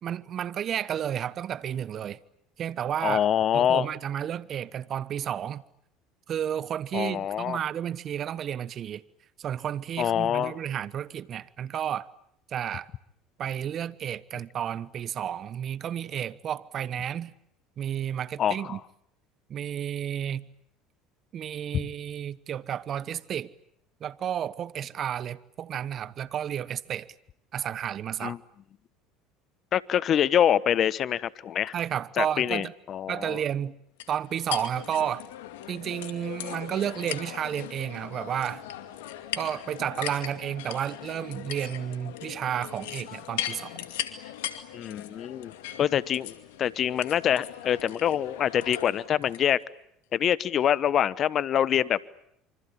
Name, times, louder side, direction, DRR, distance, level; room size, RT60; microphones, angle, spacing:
voice 1, 0.0-2.2 2.6-3.3 3.5-5.6 6.3-9.0 9.4-12.1 12.5-12.9 13.4-17.3 17.8-18.8 19.5-20.5 21.3-23.5 24.0-27.1 27.5-28.4 31.7-32.7 33.1-33.8 34.1-35.2 35.7-38.6 39.4-43.8, right 9 dB, 45° right, 1.1 m, -32 dB
voice 2, 3.0-3.9 6.9-7.6 10.0-10.5 18.4-18.8 21.7-21.8 28.2-28.4 29.7-31.7 32.2-33.4 44.7-45.5 45.8-49.6 50.1-52.0, left 10 dB, 45° left, 1.1 m, -25 dB
sound 1, 34.0-49.4, left 12 dB, 80° left, 2.4 m, -39 dB
26.5 x 25.0 x 8.6 m
hypercardioid pair, 85°, 0 cm